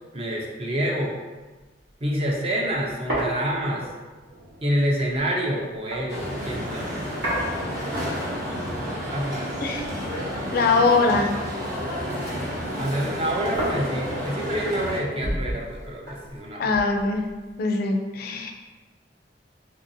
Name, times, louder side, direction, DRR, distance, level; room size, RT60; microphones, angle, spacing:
voice 1, 0.1-1.1 2.0-3.9 4.6-6.9 9.1-9.5 12.8-16.8, equal, 30° right, -2 dB, 0.5 m, -27 dB
sound 1, 1.4-1.6 1.9-2.0 2.3-6.6 7.2-8.4 8.7-10.1 10.3-12.1 12.4-17.6, right 1 dB, 85° right, 1.3 m, -34 dB
sound 2, 6.1-15.0, equal, 60° right, 0.9 m, -30 dB
voice 2, 10.5-11.3 16.6-17.2 17.6-18.5, left 3 dB, 55° left, 3 dB, 0.3 m, -22 dB
3.8 x 2.6 x 2.6 m, 1.3 s
head